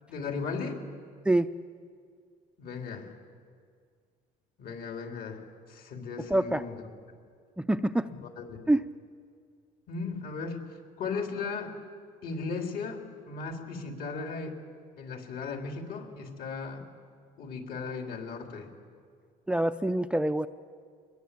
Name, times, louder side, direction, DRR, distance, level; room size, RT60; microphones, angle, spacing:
voice 1, 0.1-0.8 2.6-3.1 4.6-6.8 8.0-8.6 9.9-10.6 11.0-11.7 12.2-14.6 15.0-16.8 17.4-18.7, left 4 dB, 65° left, 3 dB, 4.0 m, -36 dB
voice 2, 6.3-6.6 7.6-8.1 8.7-8.9 19.5-20.5, right 1 dB, 5° right, 11 dB, 0.5 m, -25 dB
25.5 x 21.0 x 8.6 m, 2.1 s
cardioid pair, 110°, 17 cm